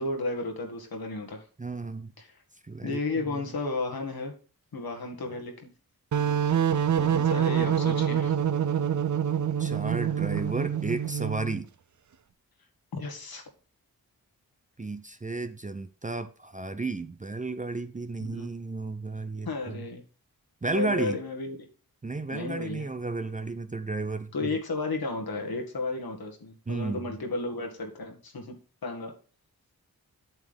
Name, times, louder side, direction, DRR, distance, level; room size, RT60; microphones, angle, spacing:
voice 1, 0.0-1.4 2.2-2.3 2.8-4.3 4.7-5.5 6.9-8.3 12.9-13.4 18.2-18.5 19.5-20.0 20.7-21.6 22.3-22.9 24.3-28.6 28.8-29.1, left 3 dB, 75° left, 2.0 m, -33 dB
voice 2, 1.6-2.1 2.7-3.0 3.3-3.4 9.6-11.7 14.8-19.8 20.6-21.2 22.0-24.5 26.7-27.0, right 3 dB, 20° right, 0.7 m, -33 dB
sound 1, 6.1-11.6, right 8 dB, 55° right, 0.6 m, -26 dB
8.1 x 7.2 x 3.5 m
cardioid pair, 45°, 37 cm